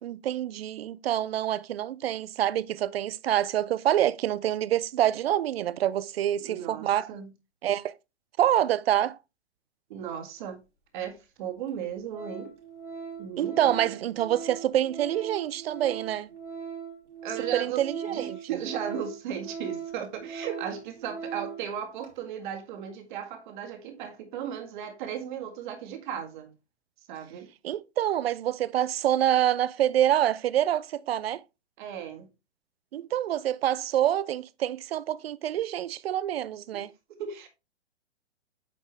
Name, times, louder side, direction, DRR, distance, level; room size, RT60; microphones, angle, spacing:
voice 1, 0.0-7.1 7.6-7.9 8.4-9.2 13.4-16.3 17.5-18.4 27.6-31.4 32.9-36.9, right 11 dB, 60° right, 0.5 m, -26 dB
voice 2, 6.4-7.3 9.9-10.6 10.9-12.5 13.2-13.7 17.2-26.5 27.1-27.5 31.8-32.3 36.7-36.8 37.2-37.5, right 8 dB, 45° right, 1.8 m, -36 dB
Organ, 11.1-11.2 11.7-11.8 12.1-21.7 22.0-22.2, right 6 dB, 80° right, 3.0 m, -39 dB
8.5 x 5.3 x 3.2 m
figure-of-eight pair, 115°, 35 cm